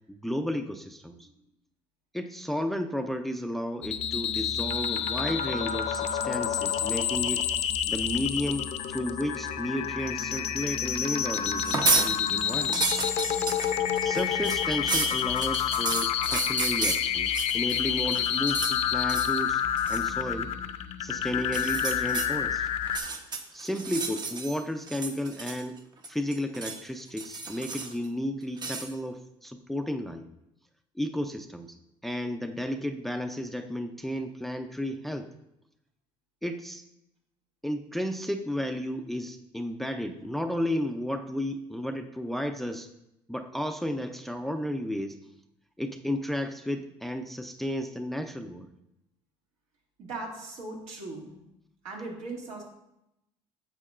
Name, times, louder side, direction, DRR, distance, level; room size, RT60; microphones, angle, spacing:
voice 1, 0.1-1.3 2.1-7.4 7.9-12.8 14.0-19.6 19.9-20.5 21.0-22.7 23.5-25.8 26.1-30.3 31.0-31.8 32.0-35.3 36.4-36.8 37.6-42.9 43.3-45.3 45.8-48.7, left 1 dB, ahead, 6 dB, 0.5 m, -33 dB
sound 1, 3.8-23.0, left 9 dB, 65° left, 0.6 m, -29 dB
sound 2, 11.6-12.1 12.5-17.8 18.1-18.8 19.1-19.4 19.8-20.1 21.4-22.3 22.8-24.6 24.9-25.8 26.0-26.8 27.2-28.0 28.6-28.9, right 4 dB, 35° right, 0.9 m, -31 dB
voice 2, 50.0-51.4 51.8-52.6, right 3 dB, 80° right, -2 dB, 2.4 m, -39 dB
9.7 x 7.4 x 2.5 m, 0.85 s
cardioid pair, 115°, 12 cm